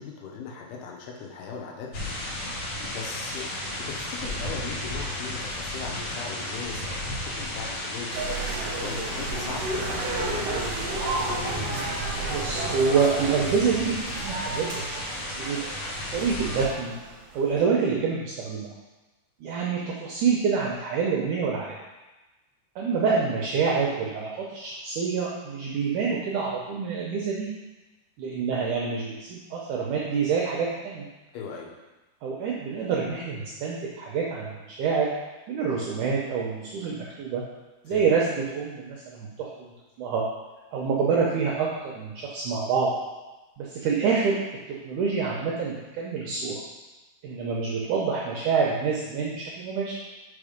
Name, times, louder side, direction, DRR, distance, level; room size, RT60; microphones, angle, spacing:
voice 1, 0.0-1.9 2.3-2.5 2.8-3.5 3.8-8.1 8.4-10.6 31.3-31.7 37.9-38.1, left 5 dB, 85° left, 0 dB, 3.0 m, -39 dB
sound 1, 1.9-16.7, left 1 dB, 70° left, 1.3 m, -33 dB
sound 2, 8.1-17.5, right 2 dB, 65° right, 1.6 m, -33 dB
voice 2, 12.3-14.9 15.1-15.6 16.1-16.9 17.3-18.7 19.4-21.7 22.8-27.5 28.2-31.1 32.2-35.1 35.5-37.4 37.8-39.7 40.0-40.2 40.7-42.9 43.6-44.4 44.7-46.6 47.2-50.0, right 5 dB, 80° right, -3 dB, 1.8 m, -27 dB
5.3 x 5.1 x 5.0 m, 1.1 s
omnidirectional pair, 4.5 m